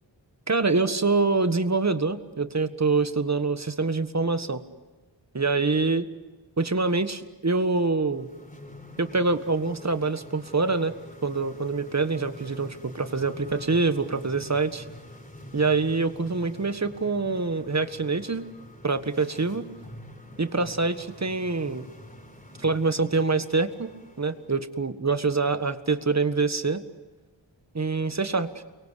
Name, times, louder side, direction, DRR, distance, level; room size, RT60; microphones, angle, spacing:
voice 1, 0.5-4.6 5.3-6.1 6.6-8.3 9.0-10.9 11.2-14.8 15.5-18.5 18.8-19.7 20.4-21.9 22.6-23.9 24.2-26.8 27.7-28.5, right 3 dB, 35° right, 10 dB, 1.6 m, -25 dB
sound 1, 8.0-24.6, left 1 dB, 20° left, 5.0 m, -46 dB
29.5 x 23.0 x 8.4 m, 1.2 s
wide cardioid pair, 65°, 45 cm